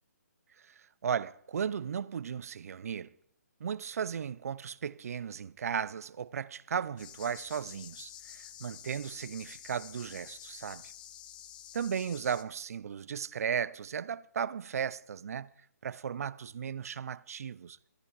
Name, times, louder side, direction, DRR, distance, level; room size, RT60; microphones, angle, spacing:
voice 1, 1.0-3.1 3.6-10.9 11.7-15.5 15.8-17.8, right 7 dB, 60° right, 0.6 m, -36 dB
sound 1, 7.0-12.4, left 11 dB, 30° left, 0.7 m, -49 dB
14.5 x 13.5 x 4.7 m
hypercardioid pair, 160°, 9 cm